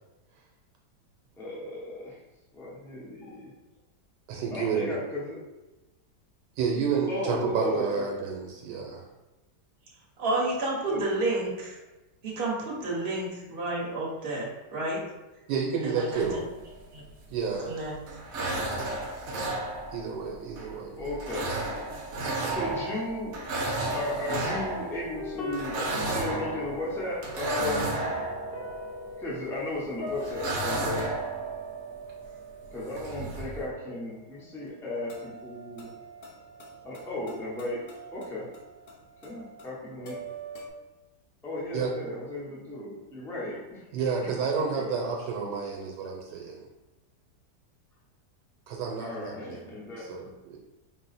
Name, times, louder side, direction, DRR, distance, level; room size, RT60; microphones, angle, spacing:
voice 1, 1.4-2.2 2.5-3.5 4.5-5.4 7.1-8.0 10.9-11.0 21.0-21.4 22.5-23.4 23.9-25.7 26.0-28.0 29.2-31.1 32.7-35.9 36.8-37.8 38.1-38.5 39.2-40.2 41.4-43.8 44.2-44.9 49.0-50.3, left 1 dB, 5° left, -6 dB, 0.4 m, -35 dB
voice 2, 4.3-5.0 6.6-9.0 15.5-16.5 17.3-17.7 19.9-21.2 41.7-41.9 43.9-46.6 48.7-49.6 50.0-50.6, right 5 dB, 85° right, -1 dB, 1.2 m, -30 dB
voice 3, 10.2-11.8 12.2-15.0 15.8-16.3 16.9-17.0 17.6-17.9, right 2 dB, 40° right, -4 dB, 1.1 m, -30 dB
sound 1, 16.1-17.6 17.9-29.6 30.1-32.3 32.6-32.7 32.9-33.7, right 2 dB, 65° right, 1.0 m, -33 dB
sound 2, 25.2-40.7, equal, 80° left, 0.5 m, -43 dB
4.6 x 2.0 x 4.0 m, 1.1 s
omnidirectional pair, 1.8 m